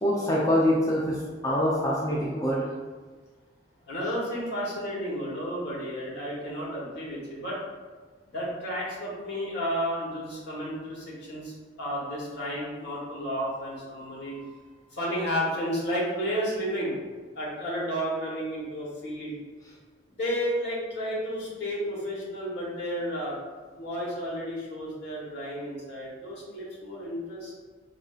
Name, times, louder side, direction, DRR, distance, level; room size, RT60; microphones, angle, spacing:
voice 1, 0.0-2.6, equal, 20° left, -5 dB, 0.4 m, -25 dB
voice 2, 3.8-7.6 8.3-14.6 14.9-17.0 17.3-19.4 20.1-23.4 23.7-27.5, equal, 60° left, -5 dB, 1.2 m, -32 dB
4.8 x 2.6 x 2.4 m, 1.4 s
head